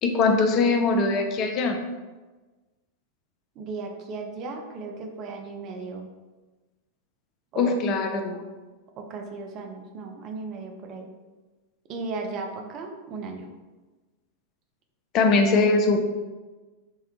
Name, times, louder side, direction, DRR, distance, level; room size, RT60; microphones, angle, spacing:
voice 1, 0.0-1.8 7.6-8.4 15.1-16.0, left 3 dB, 35° left, 5 dB, 0.3 m, -21 dB
voice 2, 3.6-6.1 7.5-7.7 9.0-11.1 11.9-13.5, right 3 dB, 35° right, 3 dB, 0.4 m, -36 dB
3.6 x 2.1 x 2.9 m, 1.2 s
figure-of-eight pair, 90°, 0 cm